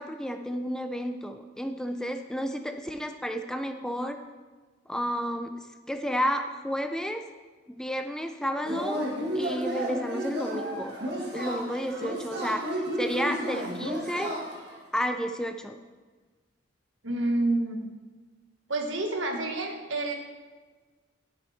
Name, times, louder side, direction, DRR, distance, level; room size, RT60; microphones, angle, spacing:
voice 1, 0.0-4.2 4.9-5.5 5.9-7.2 7.7-9.0 9.3-11.0 11.3-14.3 14.9-15.8, equal, 5° left, 7 dB, 0.4 m, -31 dB
Yell / Cheering, 8.6-14.8, equal, 60° right, 1.9 m, -32 dB
voice 2, 17.0-17.9 18.7-20.1, right 2 dB, 80° right, 2 dB, 1.3 m, -28 dB
10.0 x 6.5 x 4.2 m, 1.3 s
head